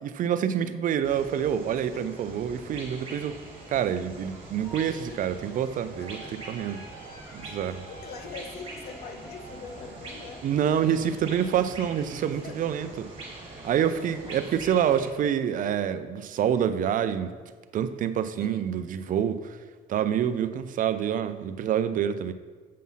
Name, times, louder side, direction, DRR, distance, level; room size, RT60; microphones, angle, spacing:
voice 1, 0.0-3.4 3.7-6.2 6.5-6.8 7.3-7.8 10.4-13.1 13.6-17.4 17.7-19.6 19.9-22.3, right 9 dB, 50° right, 11 dB, 0.5 m, -27 dB
sound 1, 1.0-15.1, right 2 dB, 35° right, 2.1 m, -44 dB
voice 2, 1.7-2.1 5.1-5.2 6.0-6.4 7.9-10.4 12.4-12.6 14.3-14.4 18.4-18.7, left 5 dB, 65° left, 7 dB, 0.9 m, -43 dB
sound 2, 4.3-10.5, right 1 dB, 10° left, 1.9 m, -49 dB
7.5 x 5.5 x 5.6 m, 1.5 s
cardioid pair, 110°, 17 cm